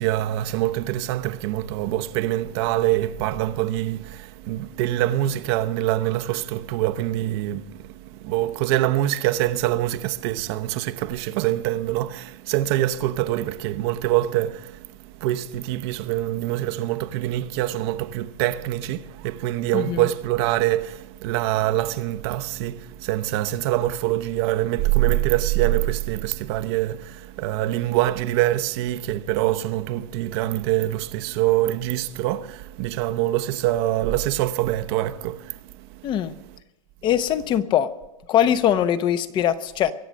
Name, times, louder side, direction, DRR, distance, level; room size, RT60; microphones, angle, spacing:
voice 1, 0.0-36.6, right 14 dB, 45° right, 0.8 m, -25 dB
voice 2, 37.0-37.9 38.3-39.9, left 10 dB, 25° left, 0.8 m, -21 dB
23.0 x 7.9 x 6.2 m
supercardioid pair, 145°, 18 cm